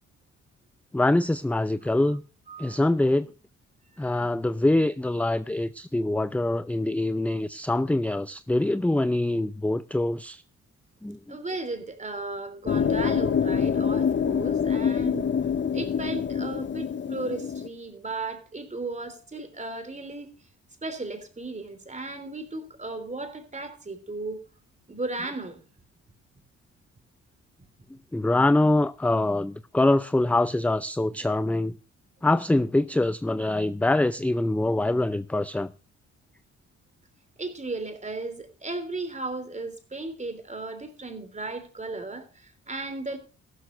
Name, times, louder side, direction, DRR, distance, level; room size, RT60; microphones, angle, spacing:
voice 1, 0.9-2.2 2.6-3.3 4.0-10.4 11.0-11.4 28.1-31.7 32.2-35.7, left 2 dB, 5° left, 0.5 m, -24 dB
voice 2, 2.5-2.8 4.0-4.3 11.3-15.3 15.7-20.3 20.8-24.4 24.9-25.6 37.4-43.2, right 2 dB, 25° right, 3.4 m, -35 dB
sound 1, 12.7-17.7, left 7 dB, 40° left, 0.8 m, -26 dB
15.0 x 13.0 x 2.6 m
cardioid pair, 65°, 29 cm